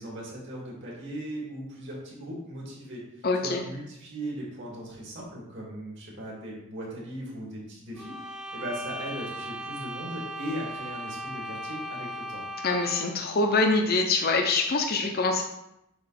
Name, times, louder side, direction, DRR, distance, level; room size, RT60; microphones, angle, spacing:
voice 1, 0.0-8.1 8.5-12.4, equal, 55° right, -3 dB, 2.5 m, -38 dB
voice 2, 3.2-3.6 12.6-15.4, left 3 dB, 45° left, 3 dB, 0.7 m, -24 dB
sound 1, 8.0-13.2, right 1 dB, 5° right, 0.5 m, -38 dB
7.9 x 3.1 x 5.9 m, 0.84 s
head